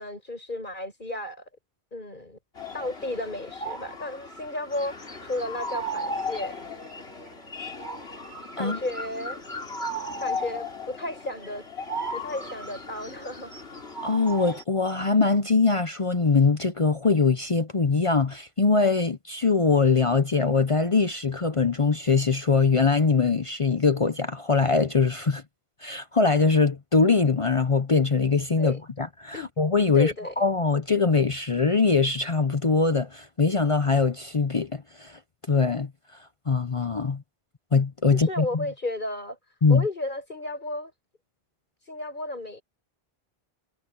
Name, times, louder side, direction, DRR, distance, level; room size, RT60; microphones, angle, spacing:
voice 1, 0.0-1.4 1.9-2.4 2.7-6.6 8.6-9.4 10.2-11.6 12.1-13.6 28.6-28.8 29.3-29.5 29.9-30.3 38.1-39.4 39.7-40.9 41.8-42.6, left 1 dB, 50° left, 6.1 m, -33 dB
sound 1, 2.6-14.6, left 1 dB, 80° left, 3.6 m, -36 dB
voice 2, 14.0-25.4 25.8-35.2 35.5-35.9 36.5-37.2 37.7-38.6 39.6-39.8, left 4 dB, 35° left, 0.8 m, -22 dB
omnidirectional pair, 1.0 m